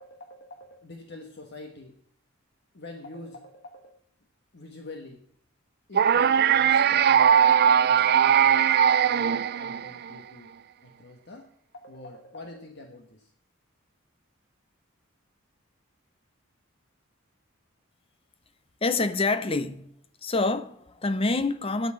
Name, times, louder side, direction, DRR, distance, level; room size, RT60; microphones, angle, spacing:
voice 1, 0.0-2.0 2.7-4.0 4.5-5.2 5.9-7.3 7.7-8.6 9.0-10.5 10.8-11.5 11.7-13.3, left 2 dB, 55° left, 1.4 m, -45 dB
sound 1, 5.9-10.1, right 8 dB, 50° right, 0.4 m, -20 dB
voice 2, 18.8-19.9 20.2-21.9, left 3 dB, 25° left, 0.7 m, -26 dB
8.8 x 8.0 x 8.6 m
head